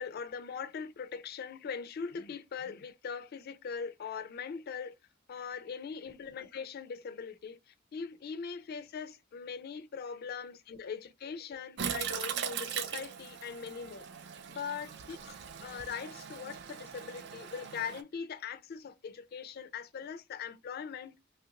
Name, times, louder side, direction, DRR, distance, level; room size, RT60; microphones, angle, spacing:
voice 1, 0.0-4.9 5.3-14.1 14.5-15.2 15.6-21.1, left 6 dB, 55° left, 0.4 m, -41 dB
Toilet flush, 11.8-18.0, right 8 dB, 60° right, 0.4 m, -40 dB
3.2 x 2.4 x 2.8 m
head